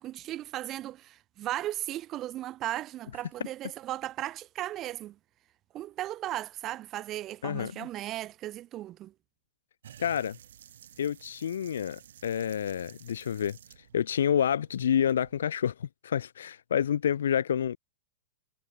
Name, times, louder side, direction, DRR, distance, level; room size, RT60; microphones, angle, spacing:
voice 1, 0.0-5.2 5.7-9.1, right 14 dB, 30° right, 1.4 m, -36 dB
voice 2, 7.4-7.9 10.0-10.4 11.0-13.6 13.9-17.8, left 9 dB, 80° left, 0.8 m, -28 dB
sound 1, 9.8-15.4, right 10 dB, 75° right, 2.9 m, -53 dB
hypercardioid pair, 120°, 0 cm